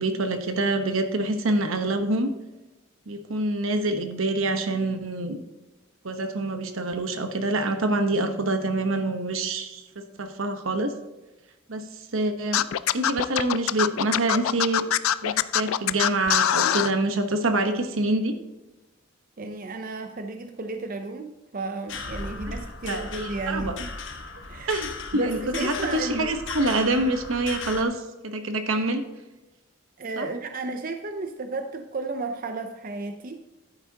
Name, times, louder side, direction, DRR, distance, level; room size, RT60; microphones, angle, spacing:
voice 1, 0.0-2.3 3.1-5.4 6.0-10.9 11.7-11.9 12.1-12.6 12.9-14.8 15.2-18.3 22.8-23.8 24.7-29.0 30.2-30.3, right 2 dB, 80° right, 7 dB, 1.0 m, -26 dB
Scratching (performance technique), 12.5-16.9, left 10 dB, 85° left, 0.4 m, -23 dB
voice 2, 19.4-23.9 24.5-26.3 30.0-33.4, right 3 dB, 45° right, 6 dB, 0.6 m, -33 dB
sound 1, 21.9-27.8, left 4 dB, 65° left, 1.1 m, -36 dB
11.0 x 9.0 x 2.8 m, 1.1 s
head